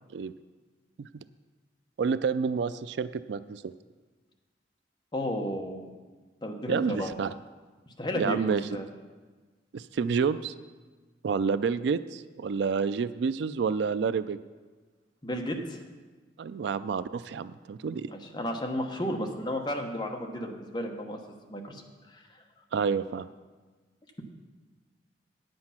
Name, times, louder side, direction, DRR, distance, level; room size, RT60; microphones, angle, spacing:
voice 1, 2.0-3.6 6.7-7.3 8.1-8.6 9.7-10.5 11.2-14.4 16.4-18.1 22.7-23.3, right 5 dB, 70° right, 14 dB, 0.3 m, -29 dB
voice 2, 5.1-6.0 6.4-7.1 8.0-8.9 15.2-15.8 18.1-21.2 21.5-21.8 22.1-22.2, equal, 25° left, 2 dB, 1.0 m, -33 dB
9.6 x 7.8 x 5.8 m, 1.4 s
head